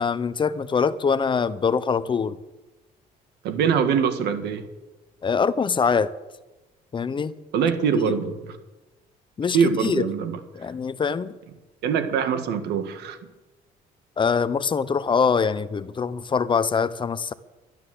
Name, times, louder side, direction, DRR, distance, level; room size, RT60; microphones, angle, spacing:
voice 1, 0.0-2.4 5.2-6.1 6.9-7.3 8.1-8.2 9.4-10.1 10.5-11.4 14.2-17.3, left 5 dB, 30° left, 0.7 m, -23 dB
voice 2, 3.4-4.7 7.5-8.6 9.5-10.4 11.8-13.2, right 7 dB, 80° right, 1.8 m, -23 dB
12.0 x 12.0 x 7.9 m
cardioid pair, 110°, 17 cm